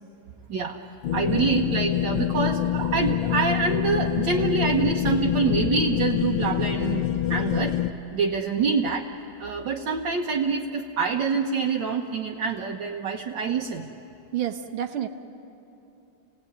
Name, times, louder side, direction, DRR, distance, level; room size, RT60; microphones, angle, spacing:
sound 1, 1.0-7.9, left 11 dB, 85° left, 1.6 m, -26 dB
voice 1, 1.1-7.8 8.1-9.0 9.4-13.9, right 5 dB, 65° right, 0 dB, 1.7 m, -26 dB
voice 2, 14.3-15.1, right 10 dB, 80° right, 8 dB, 2.0 m, -30 dB
29.0 x 18.0 x 9.4 m, 3.0 s
omnidirectional pair, 2.2 m